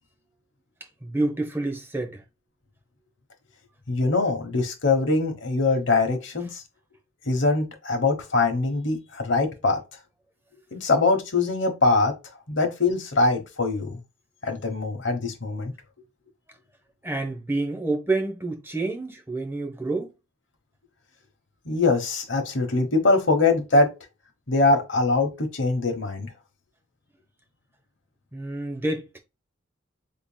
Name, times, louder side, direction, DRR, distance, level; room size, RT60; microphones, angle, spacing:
voice 1, 1.0-2.2 17.0-20.1 28.3-29.2, right 2 dB, 10° right, 0.7 m, -28 dB
voice 2, 3.9-6.6 7.3-9.8 10.7-12.1 12.5-14.0 14.4-15.7 21.6-23.9 24.5-26.3, left 3 dB, 60° left, 1.1 m, -23 dB
3.7 x 3.7 x 2.2 m
head